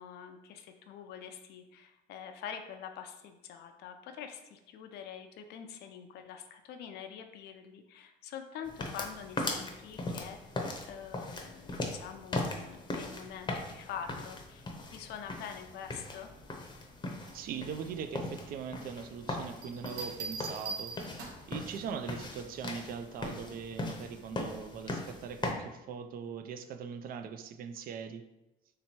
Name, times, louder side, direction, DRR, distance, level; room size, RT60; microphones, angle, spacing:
voice 1, 0.0-16.3, left 8 dB, 75° left, 0.4 m, -45 dB
sound 1, 8.7-25.5, left 2 dB, 25° left, 0.7 m, -39 dB
voice 2, 17.3-21.0 21.5-28.3, right 7 dB, 60° right, 0.4 m, -41 dB
Bell, 19.6-21.6 23.2-23.5, right 4 dB, 85° right, 0.8 m, -41 dB
3.2 x 2.9 x 4.3 m
cardioid pair, 110°, 17 cm